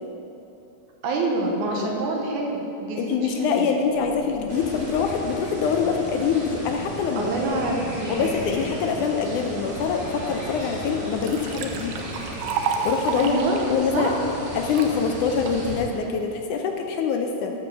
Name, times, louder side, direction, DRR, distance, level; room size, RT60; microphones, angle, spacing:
voice 1, 1.0-3.7 7.2-8.4 13.2-13.6 13.9-14.2, right 2 dB, 70° right, -1 dB, 2.3 m, -26 dB
voice 2, 3.0-7.3 8.1-12.0 12.8-13.4 13.7-14.1 14.6-17.5, left 6 dB, 75° left, 3 dB, 1.9 m, -24 dB
sound 1, 3.2-3.6 3.9-10.6, left 2 dB, ahead, 1.0 m, -43 dB
sound 2, 4.5-15.8, right 1 dB, 50° right, 0.6 m, -36 dB
Liquid, 10.9-14.9 15.5-15.9, right 5 dB, 85° right, 1.5 m, -31 dB
12.0 x 5.4 x 6.9 m, 2.9 s
omnidirectional pair, 3.9 m